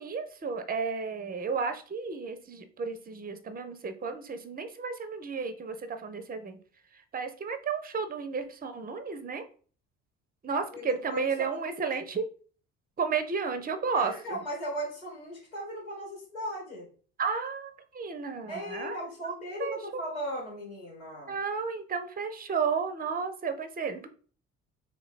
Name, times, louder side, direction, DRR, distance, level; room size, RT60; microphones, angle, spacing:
voice 1, 0.0-6.6 7.1-9.4 10.4-12.2 13.0-14.4 17.2-19.0 19.2-19.3 19.6-20.0 21.3-24.1, right 5 dB, 20° right, 10 dB, 0.7 m, -33 dB
voice 2, 10.7-11.7 13.9-16.9 18.5-21.3, equal, 90° left, -3 dB, 1.5 m, -37 dB
3.9 x 2.9 x 4.1 m, 0.42 s
figure-of-eight pair, 45°, 41 cm